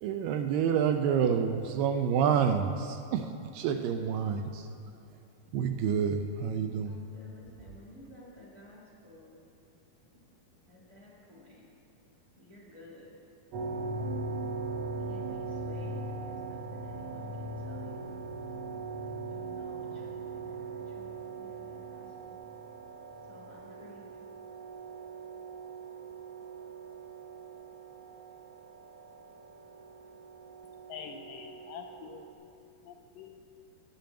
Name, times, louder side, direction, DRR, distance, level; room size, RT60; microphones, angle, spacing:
voice 1, 0.0-4.7 5.5-7.0, right 7 dB, 80° right, 6 dB, 2.1 m, -28 dB
voice 2, 6.8-9.5 10.7-11.7 12.3-13.1 15.1-18.2 18.9-22.4 23.3-24.1, left 1 dB, 30° right, -6 dB, 2.0 m, -54 dB
sound 1, 13.5-32.3, right 3 dB, 65° right, 1.6 m, -40 dB
voice 3, 30.9-32.3 32.9-33.4, left 7 dB, 80° left, 6 dB, 2.0 m, -45 dB
10.0 x 7.0 x 7.7 m, 2.7 s
omnidirectional pair, 4.2 m